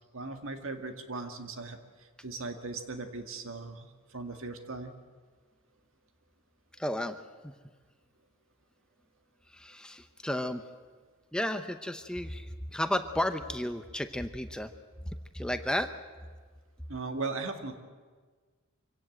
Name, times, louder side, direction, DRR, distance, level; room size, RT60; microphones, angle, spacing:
voice 1, 0.1-4.9 16.9-17.8, right 3 dB, 65° right, 6 dB, 1.9 m, -38 dB
voice 2, 6.8-7.2 7.4-7.6 9.5-10.6 11.3-14.7 15.3-15.9, left 1 dB, 5° left, 8 dB, 0.8 m, -33 dB
25.0 x 17.0 x 7.9 m, 1.5 s
head